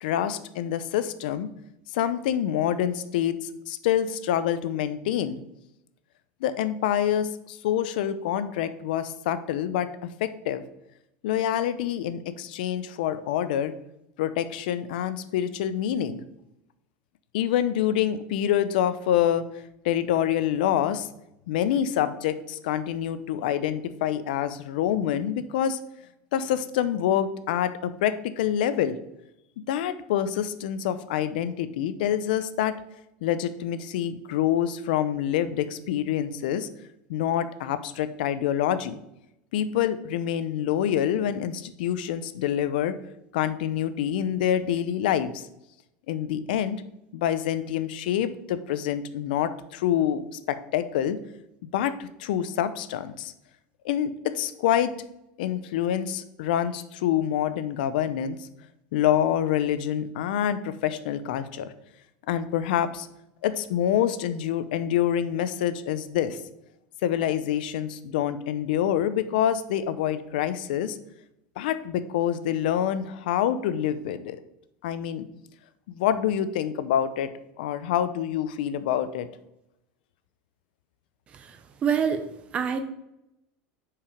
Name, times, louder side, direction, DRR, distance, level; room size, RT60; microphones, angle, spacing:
voice 1, 0.0-1.5 1.9-3.4 3.7-5.4 6.4-10.6 11.2-13.7 14.2-16.2 17.3-19.4 19.8-21.1 21.5-25.8 26.3-29.0 29.7-32.8 33.2-36.7 37.1-39.0 39.5-42.9 43.3-45.4 46.1-46.8 47.1-50.2 50.5-51.2 51.7-53.3 53.8-54.9 55.4-58.4 58.9-61.7 62.3-63.1 63.4-66.4 67.0-71.0 71.6-74.4 74.8-75.3 75.9-77.3 77.6-79.3, left 10 dB, 90° left, 13 dB, 0.6 m, -26 dB
voice 2, 81.8-82.2 82.5-82.8, right 7 dB, 25° right, 9 dB, 0.6 m, -25 dB
5.8 x 4.8 x 5.0 m, 0.84 s
supercardioid pair, 165°, 5 cm